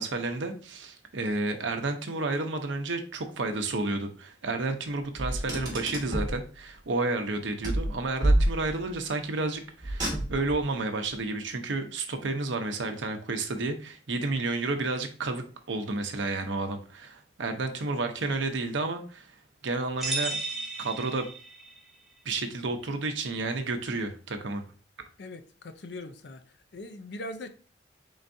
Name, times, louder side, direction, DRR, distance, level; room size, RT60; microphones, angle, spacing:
voice 1, 0.0-19.3 19.6-20.4 20.8-21.3 22.2-24.6, right 3 dB, 75° right, 0.7 m, -31 dB
Car, 5.2-6.4 7.6-9.0 9.8-10.6, right 1 dB, 20° right, 1.7 m, -27 dB
sound 1, 20.0-21.8, right 2 dB, ahead, 0.7 m, -34 dB
voice 2, 25.2-26.4 26.7-27.5, left 1 dB, 60° left, 0.5 m, -40 dB
4.5 x 3.9 x 2.6 m
head